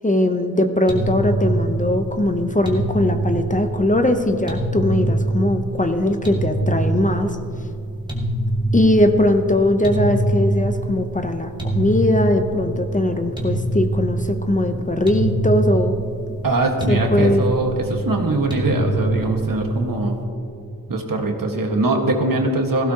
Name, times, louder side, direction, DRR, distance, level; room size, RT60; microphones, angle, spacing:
voice 1, 0.0-7.4 8.7-16.0 16.9-17.5, left 1 dB, 20° left, 6 dB, 0.7 m, -20 dB
sound 1, 0.9-20.2, right 2 dB, 15° right, 2.0 m, -24 dB
voice 2, 16.4-20.2 20.9-22.9, right 2 dB, 70° right, 2 dB, 1.6 m, -22 dB
16.5 x 16.0 x 2.9 m, 2.5 s
wide cardioid pair, 100°, 35 cm